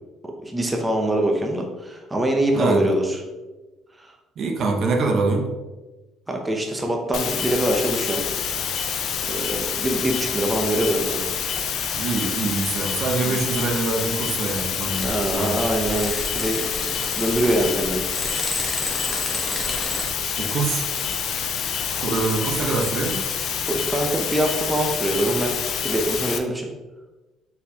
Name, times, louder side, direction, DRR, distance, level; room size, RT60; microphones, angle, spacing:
voice 1, 0.4-3.2 4.0-4.1 6.3-8.2 9.3-11.2 13.2-13.4 15.0-16.6 17.2-18.0 22.0-22.2 23.7-26.7, right 1 dB, 15° right, 2 dB, 0.6 m, -24 dB
voice 2, 2.5-2.9 4.4-5.5 12.0-15.1 15.3-15.6 17.4-17.5 20.4-20.9 21.9-23.2, right 3 dB, 55° right, 2 dB, 0.7 m, -24 dB
sound 1, 7.1-26.4, left 7 dB, 60° left, 0.4 m, -27 dB
sound 2, 14.9-20.0, left 1 dB, 5° left, 1.0 m, -32 dB
4.1 x 4.1 x 2.7 m, 1.1 s
cardioid pair, 100°, 0 cm